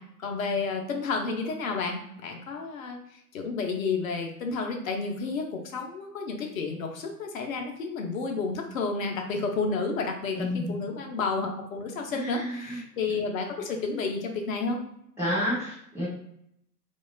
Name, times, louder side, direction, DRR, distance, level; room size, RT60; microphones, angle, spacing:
voice 1, 0.0-3.0 3.3-14.8, left 4 dB, 55° left, 2 dB, 0.6 m, -31 dB
voice 2, 10.4-10.8 12.1-12.8 15.2-16.1, equal, 5° right, -11 dB, 0.5 m, -30 dB
2.9 x 2.3 x 2.2 m, 0.74 s
figure-of-eight pair, 100°, 50 cm